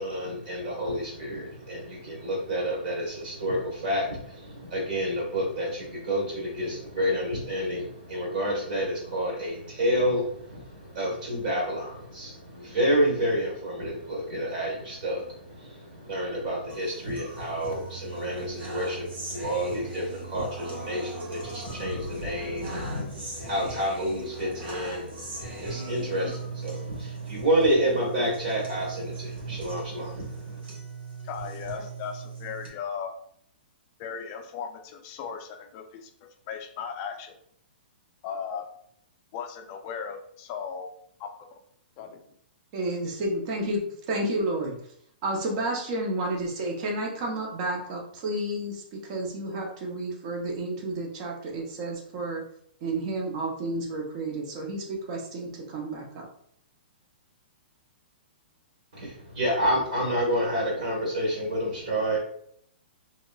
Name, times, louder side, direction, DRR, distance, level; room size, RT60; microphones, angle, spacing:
voice 1, 0.0-30.6 58.9-62.2, equal, 50° right, -1 dB, 1.4 m, -29 dB
sound 1, 16.7-32.7, right 4 dB, 75° right, 1.2 m, -39 dB
voice 2, 31.2-33.1 34.0-36.1 36.5-37.4 38.2-38.7 39.3-40.9 41.2-41.6 42.0-42.2, left 6 dB, 25° left, 5 dB, 0.3 m, -37 dB
voice 3, 42.7-44.7 45.2-52.4 52.8-56.2, right 1 dB, 35° right, 0 dB, 0.7 m, -31 dB
2.9 x 2.8 x 2.3 m, 0.66 s
hypercardioid pair, 165°, 6 cm